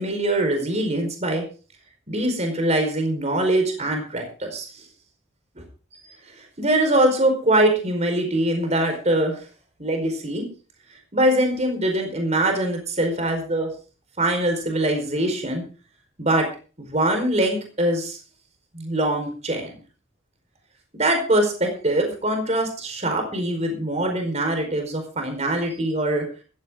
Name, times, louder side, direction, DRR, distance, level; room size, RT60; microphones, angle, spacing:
voice 1, 0.0-1.4 2.1-4.7 5.5-5.6 6.0-9.4 9.8-10.4 11.1-13.7 14.2-15.6 16.2-16.5 16.8-18.2 18.7-19.7 20.9-26.2, right 1 dB, 35° right, 4 dB, 4.8 m, -23 dB
15.0 x 15.0 x 3.9 m, 0.37 s
head